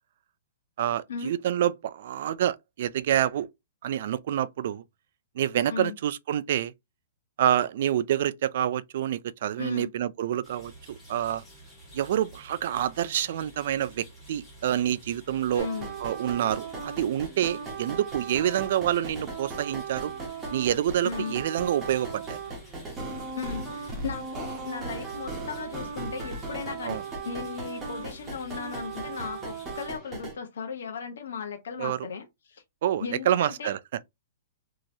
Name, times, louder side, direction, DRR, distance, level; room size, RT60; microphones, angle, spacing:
voice 1, 0.8-3.5 3.8-4.8 5.4-6.7 7.4-11.4 11.9-15.7 16.0-20.1 20.5-22.4 26.8-27.0 31.8-32.1 32.8-34.0, right 11 dB, 55° right, 0.3 m, -27 dB
voice 2, 9.6-9.9 15.5-15.9 21.0-21.4 23.3-32.6 33.0-33.7, left 6 dB, 80° left, 0.8 m, -36 dB
sound 1, 10.4-29.9, equal, 5° left, 1.7 m, -51 dB
sound 2, 15.6-30.4, right 4 dB, 15° right, 1.1 m, -37 dB
3.0 x 2.8 x 2.6 m
hypercardioid pair, 160°, 0 cm